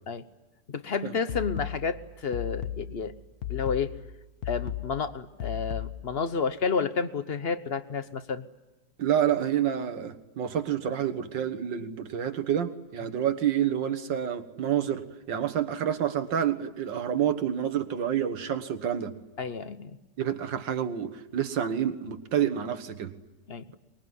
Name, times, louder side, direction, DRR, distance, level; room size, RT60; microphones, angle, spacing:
voice 1, 0.7-3.1 3.5-3.9 4.5-8.4 19.4-20.0 23.5-23.6, left 5 dB, 40° left, 12 dB, 1.0 m, -30 dB
sound 1, 1.3-6.3, left 11 dB, 60° left, 1.5 m, -36 dB
voice 2, 9.0-19.1 20.2-23.1, right 9 dB, 85° right, 8 dB, 2.1 m, -28 dB
24.0 x 21.5 x 9.7 m, 1.1 s
omnidirectional pair, 1.9 m